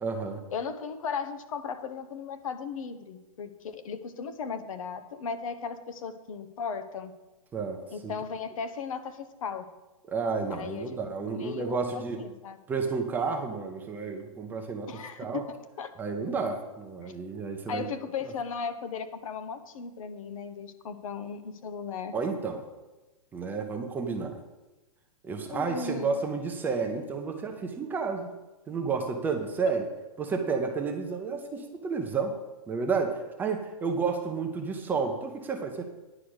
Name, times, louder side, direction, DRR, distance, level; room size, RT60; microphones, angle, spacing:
voice 1, 0.0-0.4 7.5-8.1 10.1-12.2 12.7-14.9 15.2-15.4 16.0-17.9 22.1-22.6 23.3-24.4 25.2-28.3 28.7-29.9 30.2-32.4 32.7-35.9, right 5 dB, 10° right, 3 dB, 0.6 m, -31 dB
voice 2, 0.5-7.1 7.9-9.7 10.5-11.0 11.3-12.6 14.9-15.9 17.0-17.1 17.7-22.1 25.4-26.2, left 6 dB, 65° left, 10 dB, 1.0 m, -36 dB
10.0 x 4.9 x 7.9 m, 1.1 s
hypercardioid pair, 155°, 19 cm